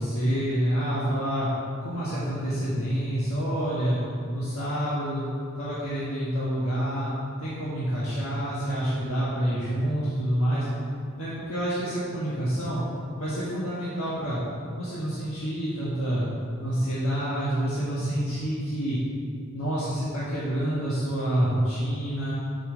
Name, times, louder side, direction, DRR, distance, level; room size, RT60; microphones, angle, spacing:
voice 1, 0.0-1.5 1.8-4.0 4.3-5.3 5.6-7.1 7.4-10.6 11.2-12.8 13.2-14.4 14.8-16.3 16.6-19.0 19.5-22.3, right 1 dB, 70° left, -9 dB, 1.5 m, -27 dB
5.7 x 5.5 x 6.4 m, 2.3 s
head